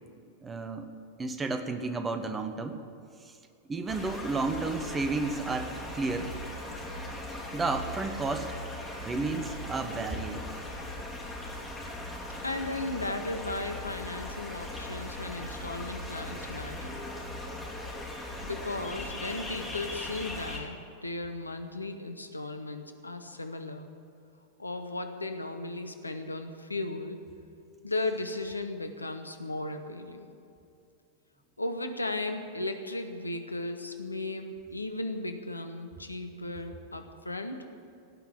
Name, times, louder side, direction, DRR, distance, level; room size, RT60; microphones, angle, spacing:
voice 1, 0.4-0.9 1.2-2.8 3.2-3.4 3.7-6.3 7.5-8.6 9.0-10.4, right 3 dB, 15° right, 7 dB, 1.1 m, -32 dB
sound 1, 3.9-20.6, left 1 dB, 5° left, 3.7 m, -39 dB
voice 2, 12.4-17.0 18.4-23.9 24.6-27.2 27.8-30.3 31.6-37.7, left 2 dB, 80° left, 7 dB, 0.9 m, -36 dB
17.5 x 5.9 x 9.9 m, 2.5 s
figure-of-eight pair, 90°, 0 cm